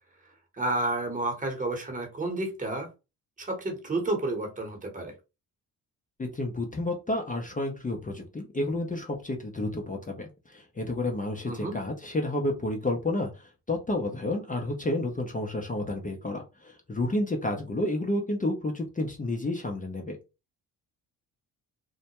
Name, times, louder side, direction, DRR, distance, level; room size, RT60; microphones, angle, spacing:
voice 1, 0.6-2.9 3.4-5.1 11.5-11.7, right 2 dB, 15° right, 3 dB, 1.1 m, -30 dB
voice 2, 6.2-20.2, left 1 dB, 20° left, 1 dB, 0.6 m, -30 dB
2.2 x 2.1 x 2.9 m, 0.28 s
hypercardioid pair, 50°, 45 cm